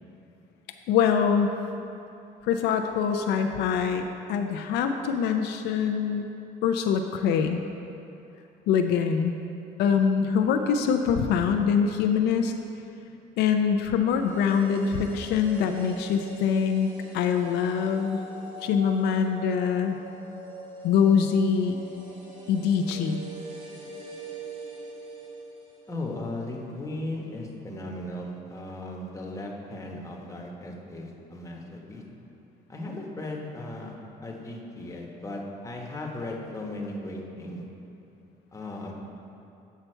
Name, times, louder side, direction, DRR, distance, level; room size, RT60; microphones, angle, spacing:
voice 1, 0.9-1.5 2.4-4.0 4.3-6.3 6.6-7.6 8.7-9.4 9.8-12.5 13.4-16.9 17.1-18.2 18.6-20.0 20.8-21.8 22.5-23.2, left 7 dB, 80° left, 5 dB, 0.4 m, -24 dB
sound 1, 14.1-26.2 26.5-26.6, right 1 dB, 50° right, 1.9 m, -43 dB
voice 2, 25.9-32.0 32.7-33.9 34.2-37.6 38.5-38.9, left 1 dB, 20° left, -1 dB, 1.1 m, -36 dB
8.2 x 5.7 x 4.4 m, 2.8 s
cardioid pair, 110°, 17 cm